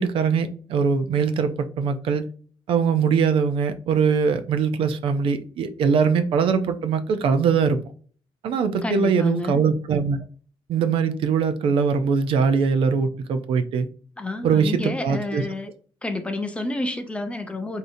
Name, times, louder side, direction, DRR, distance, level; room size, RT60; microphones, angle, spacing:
voice 1, 0.0-2.2 2.7-7.8 8.4-10.2 10.7-13.9 14.4-15.4, right 6 dB, 70° right, 0.5 m, -22 dB
voice 2, 8.8-9.6 14.2-15.7 16.0-17.8, left 2 dB, 10° left, 0.4 m, -29 dB
4.9 x 2.7 x 2.6 m
cardioid pair, 170°, 10 cm